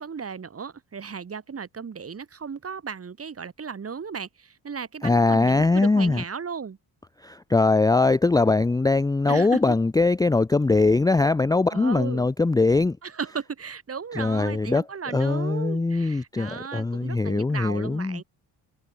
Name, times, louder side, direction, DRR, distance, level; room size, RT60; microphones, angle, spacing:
voice 1, 0.0-6.8 9.3-9.8 11.7-12.3 13.0-18.2, right 6 dB, 35° right, 4.2 m, -35 dB
voice 2, 5.0-6.2 7.2-13.0 14.2-14.8 15.1-18.2, left 3 dB, 10° left, 0.6 m, -21 dB
cardioid pair, 100°, 39 cm